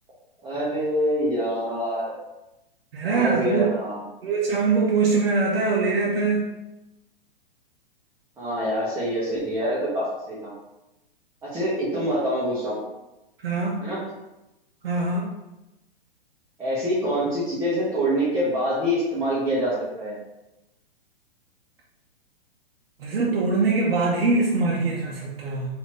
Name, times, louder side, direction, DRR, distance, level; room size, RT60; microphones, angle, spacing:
voice 1, 0.4-2.1 3.0-4.0 8.4-10.5 11.4-12.8 13.8-14.0 16.6-20.2, equal, 10° right, -10 dB, 1.1 m, -25 dB
voice 2, 2.9-3.7 4.2-6.5 13.4-13.8 14.8-15.3 23.0-25.7, right 4 dB, 70° right, -4 dB, 0.9 m, -23 dB
4.1 x 2.9 x 3.1 m, 0.97 s
hypercardioid pair, 120°, 30 cm